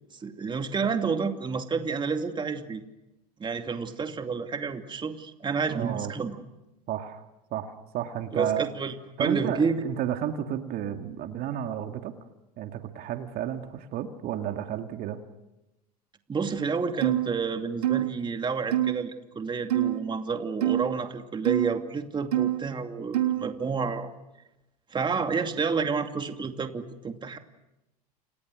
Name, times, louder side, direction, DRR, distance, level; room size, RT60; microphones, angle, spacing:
voice 1, 0.1-2.8 3.4-6.4 8.3-9.8 16.3-24.1 24.9-27.4, right 5 dB, 25° right, 6 dB, 2.6 m, -30 dB
voice 2, 5.7-6.1 6.9-8.7 9.2-12.1 12.6-15.2, right 10 dB, 50° right, 6 dB, 2.3 m, -32 dB
sound 1, 17.0-17.3 17.8-18.1 18.7-18.9 19.7-20.0 20.6-20.9 21.4-21.7 22.3-22.6 23.1-23.4, right 13 dB, 80° right, 2.6 m, -24 dB
30.0 x 28.5 x 6.4 m, 0.97 s
hypercardioid pair, 90°, 20 cm